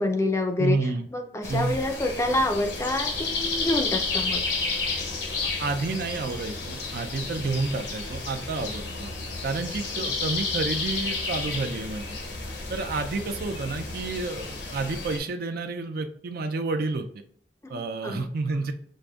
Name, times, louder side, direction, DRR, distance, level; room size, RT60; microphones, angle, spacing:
voice 1, 0.0-4.5 9.9-10.1 17.6-17.7 18.0-18.3, left 2 dB, 15° left, 5 dB, 0.4 m, -27 dB
voice 2, 0.6-1.1 1.5-1.7 5.6-9.1 9.4-12.0 12.7-17.1 17.7-18.7, right 3 dB, 60° right, 7 dB, 0.4 m, -30 dB
upland-forest-surround-sound-rear, 1.4-15.2, left 3 dB, 75° left, 0.9 m, -31 dB
6.3 x 2.5 x 2.3 m, 0.64 s
head